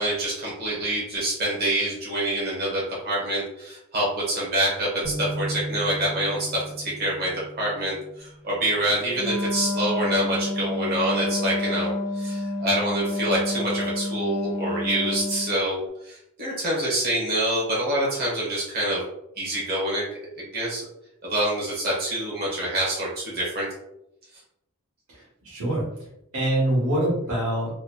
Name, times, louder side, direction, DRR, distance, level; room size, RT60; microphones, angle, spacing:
voice 1, 0.0-7.3 7.6-19.0 19.4-20.1 20.3-20.9 21.2-23.7, right 1 dB, 45° right, -5 dB, 1.0 m, -26 dB
sound 1, 5.0-8.6, right 1 dB, 90° right, 1.2 m, -36 dB
Wind instrument woodwind instrument, 9.1-15.6, left 1 dB, 10° right, 0.3 m, -29 dB
voice 2, 25.1-25.8 26.3-27.7, right 1 dB, 70° right, -5 dB, 1.3 m, -25 dB
2.9 x 2.1 x 2.2 m, 0.82 s
head